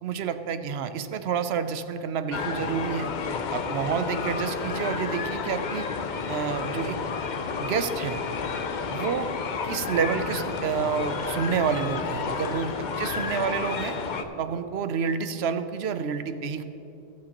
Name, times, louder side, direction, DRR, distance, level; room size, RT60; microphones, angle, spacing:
voice 1, 0.0-3.1 3.5-5.9 6.3-7.0 7.6-8.2 8.9-9.3 9.6-12.7 13.0-14.0 14.4-16.6, right 7 dB, 75° right, 10 dB, 0.9 m, -29 dB
sound 1, 2.3-14.2, left 5 dB, 50° left, 0.7 m, -31 dB
21.0 x 7.5 x 2.9 m, 2.9 s
omnidirectional pair, 1.1 m